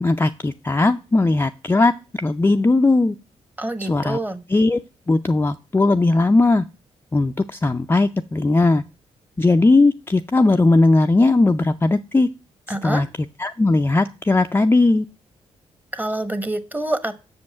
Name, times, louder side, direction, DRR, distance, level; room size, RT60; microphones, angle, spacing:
voice 1, 0.0-1.9 2.2-3.1 3.8-4.2 4.5-4.8 5.1-6.6 7.1-8.8 9.4-12.3 12.7-13.1 13.4-15.0, left 2 dB, 15° left, 6 dB, 0.4 m, -18 dB
voice 2, 3.6-4.4 12.7-13.0 15.9-17.2, right 1 dB, 15° right, 12 dB, 1.1 m, -26 dB
6.4 x 5.3 x 7.0 m, 0.32 s
cardioid pair, 60°, 13 cm